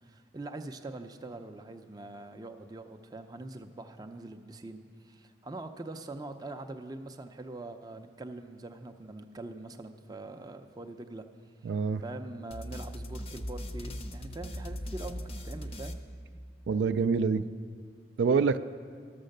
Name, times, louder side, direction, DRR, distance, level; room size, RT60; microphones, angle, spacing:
voice 1, 0.0-11.3 11.6-11.7 12.0-16.0, right 2 dB, 20° right, 7 dB, 0.4 m, -43 dB
voice 2, 11.6-12.0 16.7-17.4 18.2-18.6, right 5 dB, 85° right, 12 dB, 0.3 m, -26 dB
sound 1, 12.5-16.8, equal, 35° left, 0.5 m, -40 dB
12.5 x 6.5 x 6.5 m, 2.2 s
head